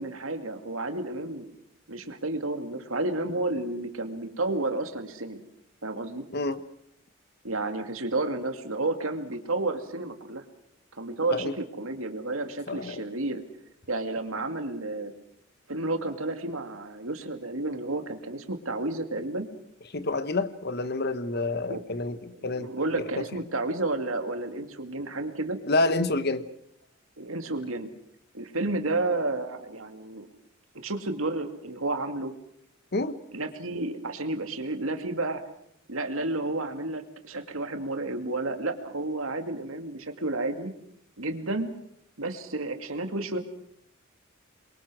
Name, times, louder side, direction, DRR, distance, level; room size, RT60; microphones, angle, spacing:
voice 1, 0.0-1.5 1.9-5.4 5.8-6.2 7.4-10.4 11.0-13.4 13.9-15.1 15.7-19.5 21.7-21.8 22.5-25.6 27.2-27.9 28.3-30.3 30.7-32.3 33.3-35.4 35.9-40.7 41.2-41.7 42.2-43.4, right 2 dB, 80° right, 6 dB, 2.4 m, -31 dB
voice 2, 12.7-13.0 19.9-22.7 23.2-23.3 25.7-26.4 32.9-33.2, left 2 dB, 50° left, 12 dB, 1.3 m, -28 dB
27.5 x 23.0 x 6.3 m, 0.72 s
head